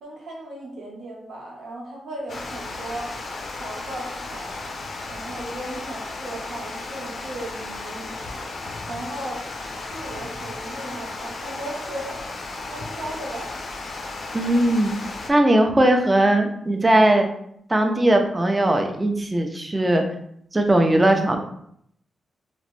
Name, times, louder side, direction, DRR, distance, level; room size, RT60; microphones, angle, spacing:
voice 1, 0.0-3.1 3.5-4.5 5.1-8.5 8.9-9.5 9.9-12.2 12.6-13.5, right 1 dB, 80° right, -2 dB, 0.9 m, -36 dB
Water, 2.3-15.3, left 3 dB, 55° left, 0.4 m, -34 dB
voice 2, 14.3-15.0 15.3-17.3 17.7-20.0 20.5-21.4, right 1 dB, 20° right, 4 dB, 0.4 m, -19 dB
2.9 x 2.1 x 3.1 m, 0.71 s
wide cardioid pair, 125°, 0 cm